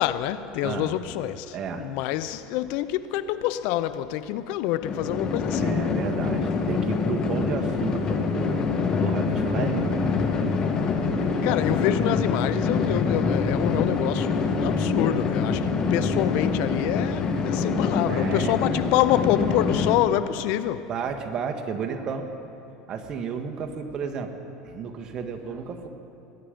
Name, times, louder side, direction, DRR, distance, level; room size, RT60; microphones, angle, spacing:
voice 1, 0.0-5.8 11.4-20.9, left 13 dB, 65° left, 0.5 m, -26 dB
voice 2, 0.6-0.9 1.5-1.9 5.6-10.2 16.6-16.9 18.1-18.8 20.9-22.4 22.9-24.4 24.6-25.9, right 6 dB, 40° right, 1.4 m, -32 dB
sound 1, 4.8-20.0, left 4 dB, 35° left, 1.4 m, -25 dB
20.5 x 10.5 x 5.2 m
supercardioid pair, 110°, 2 cm